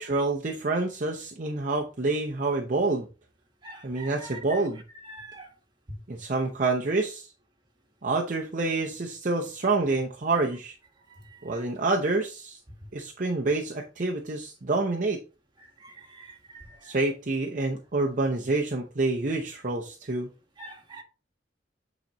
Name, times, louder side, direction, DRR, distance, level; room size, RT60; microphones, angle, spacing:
voice 1, 0.0-3.1 3.8-4.8 6.1-7.3 8.0-10.7 11.4-12.6 12.9-15.2 16.8-20.3, right 3 dB, 45° right, 0 dB, 0.8 m, -27 dB
voice 2, 3.6-4.6 5.0-5.5 11.1-11.6 15.6-17.0 20.6-21.0, right 2 dB, 25° right, 2 dB, 1.6 m, -46 dB
8.8 x 4.0 x 3.1 m, 0.32 s
head